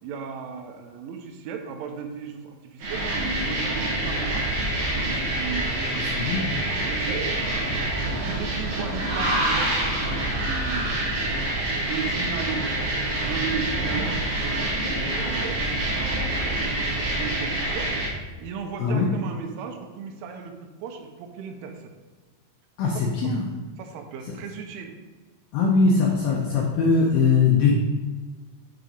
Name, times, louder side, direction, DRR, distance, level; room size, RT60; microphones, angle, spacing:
voice 1, 0.0-6.5 6.8-7.3 8.1-10.9 11.9-17.9 18.4-21.9 22.9-23.1 23.8-24.9, right 6 dB, 85° right, 5 dB, 3.3 m, -36 dB
sound 1, 2.8-18.1, right 1 dB, 65° right, 3.6 m, -26 dB
voice 2, 5.9-6.6 18.8-19.2 22.8-23.6 24.3-24.4 25.5-27.7, left 4 dB, 90° left, -1 dB, 2.1 m, -21 dB
9.6 x 4.0 x 5.1 m, 1.4 s
omnidirectional pair, 5.4 m